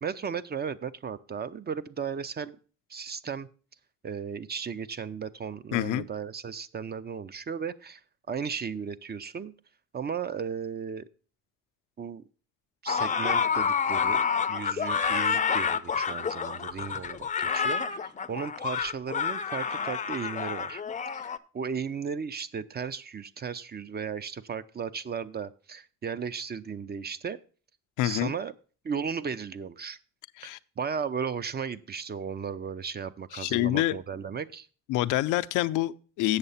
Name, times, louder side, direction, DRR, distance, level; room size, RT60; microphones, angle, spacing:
voice 1, 0.0-2.6 2.9-3.5 4.0-8.0 8.3-9.5 9.9-11.0 12.0-12.2 12.8-14.2 14.5-20.8 21.1-27.4 28.0-28.5 28.8-30.0 30.4-34.7, right 6 dB, 35° right, 0.5 m, -35 dB
voice 2, 5.7-6.1 28.0-28.3 30.4-30.6 33.3-34.0 34.9-36.4, left 15 dB, 90° left, 0.5 m, -27 dB
sound 1, 12.9-21.4, left 6 dB, 25° left, 0.5 m, -28 dB
8.1 x 6.5 x 5.5 m
cardioid pair, 90°, 30 cm